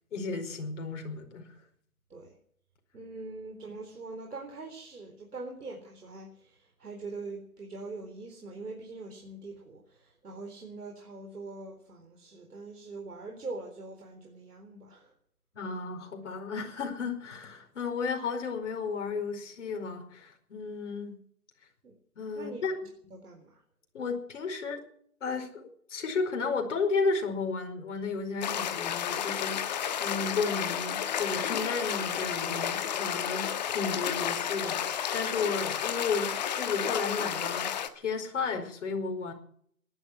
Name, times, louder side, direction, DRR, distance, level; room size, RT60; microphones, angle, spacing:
voice 1, 0.1-1.4 15.5-21.2 22.2-22.7 23.9-24.9 25.2-39.3, left 4 dB, 50° left, 4 dB, 4.9 m, -33 dB
voice 2, 2.9-15.1 21.8-22.0 22.3-23.6, right 3 dB, 85° right, 2 dB, 4.1 m, -43 dB
sound 1, 28.4-37.9, left 9 dB, 30° left, 1.2 m, -32 dB
19.0 x 11.5 x 6.2 m, 0.62 s
hypercardioid pair, 160°, 45 cm